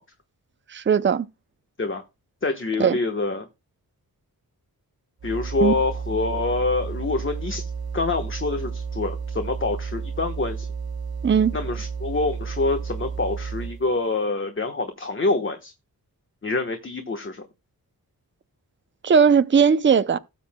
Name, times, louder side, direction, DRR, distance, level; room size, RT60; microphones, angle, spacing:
voice 1, 0.7-1.3 2.8-3.0 5.6-5.7 11.2-11.6 19.0-20.2, right 6 dB, 35° right, 0.5 m, -18 dB
voice 2, 2.4-3.5 5.2-10.7 11.5-15.7 16.4-17.4, left 3 dB, 35° left, 1.2 m, -26 dB
sound 1, 5.2-13.9, right 5 dB, 80° right, 1.3 m, -32 dB
18.0 x 7.6 x 2.2 m
wide cardioid pair, 145°, 36 cm